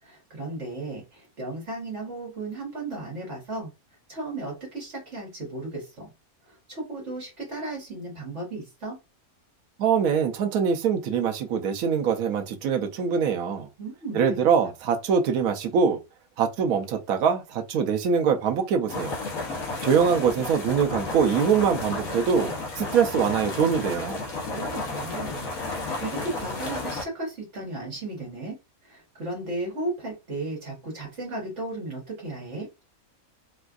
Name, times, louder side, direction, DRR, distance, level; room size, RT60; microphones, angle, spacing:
voice 1, 0.0-3.7 4.1-6.1 6.4-9.0 13.8-14.4 24.4-25.5 26.0-28.5 28.8-32.7, right 2 dB, 55° right, 1.6 m, -35 dB
voice 2, 9.8-13.7 14.1-16.0 16.4-19.2 19.8-24.2, right 6 dB, 80° right, 1.1 m, -23 dB
sound 1, 18.9-27.1, left 3 dB, 75° left, 1.4 m, -32 dB
4.3 x 2.3 x 2.3 m
omnidirectional pair, 1.5 m